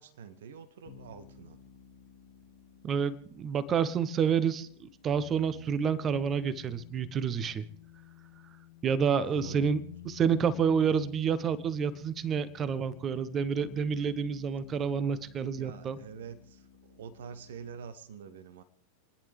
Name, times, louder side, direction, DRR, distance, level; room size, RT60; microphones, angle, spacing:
voice 1, 0.0-1.6 9.2-9.6 15.5-18.6, right 6 dB, 60° right, 12 dB, 1.2 m, -46 dB
sound 1, 0.9-17.9, left 9 dB, 50° left, 1.3 m, -52 dB
voice 2, 2.8-7.6 8.8-16.0, right 7 dB, 25° right, 15 dB, 1.0 m, -29 dB
30.0 x 10.5 x 3.5 m, 0.63 s
figure-of-eight pair, 90°, 0 cm